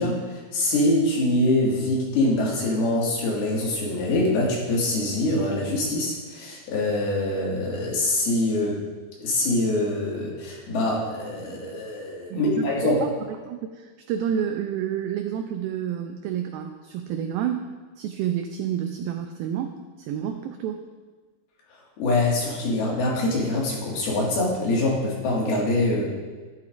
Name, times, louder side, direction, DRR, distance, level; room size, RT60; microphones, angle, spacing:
voice 1, 0.0-8.8 9.2-13.0 22.0-26.1, left 1 dB, 70° left, -3 dB, 3.7 m, -24 dB
voice 2, 12.3-13.1 13.5-17.7 18.0-20.8, right 9 dB, 90° right, 5 dB, 2.0 m, -29 dB
12.0 x 11.5 x 2.5 m, 1.4 s
omnidirectional pair, 4.7 m